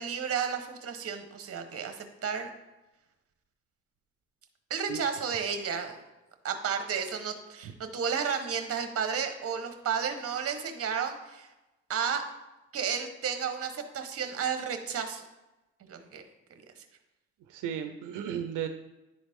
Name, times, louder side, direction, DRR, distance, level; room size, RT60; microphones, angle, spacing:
voice 1, 0.0-2.5 4.7-6.0 6.4-11.5 11.9-12.2 12.7-15.2 15.8-16.2 16.8-16.9, right 7 dB, 50° right, 7 dB, 1.1 m, -32 dB
voice 2, 17.5-18.7, right 9 dB, 85° right, 7 dB, 0.6 m, -34 dB
10.5 x 4.0 x 3.6 m, 1.0 s
cardioid pair, 90°, 30 cm